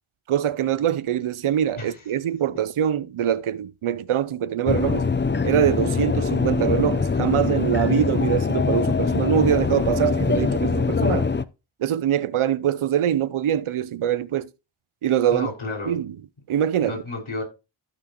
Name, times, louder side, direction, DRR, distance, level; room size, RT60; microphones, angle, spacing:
voice 1, 0.3-5.1 5.4-11.3 11.8-14.5 15.0-15.5 15.9-16.1 16.5-17.0, right 10 dB, 85° right, 0.7 m, -23 dB
sound 1, 4.7-11.4, left 4 dB, 25° left, 0.6 m, -23 dB
voice 2, 15.3-16.0 16.8-17.4, left 2 dB, 75° left, 5.4 m, -32 dB
15.0 x 6.1 x 3.0 m
cardioid pair, 45°, 48 cm